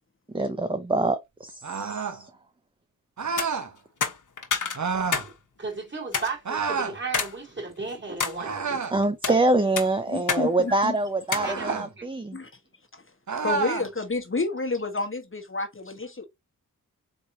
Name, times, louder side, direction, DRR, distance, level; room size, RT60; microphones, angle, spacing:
voice 1, 0.3-2.3 8.9-12.4, right 2 dB, 15° right, 0.5 m, -25 dB
sound 1, 1.6-2.2 3.2-3.7 4.7-5.3 6.4-7.0 8.4-9.0 11.3-11.9 13.3-13.9, right 5 dB, 55° right, 0.9 m, -29 dB
sound 2, 3.2-3.5 4.0-5.3 5.6-5.7 6.1-6.3 7.1-7.3 7.8-8.4 9.0-9.4 9.8-10.5 10.7-10.8 11.3-11.5, left 5 dB, 60° left, 1.1 m, -28 dB
voice 2, 5.6-9.0 9.3-9.4 11.4-12.1, right 4 dB, 30° right, 2.8 m, -34 dB
voice 3, 10.1-11.0 12.3-12.5 12.9-13.0 13.4-16.2, left 3 dB, 35° left, 1.2 m, -30 dB
4.2 x 3.3 x 2.7 m
cardioid pair, 45°, 36 cm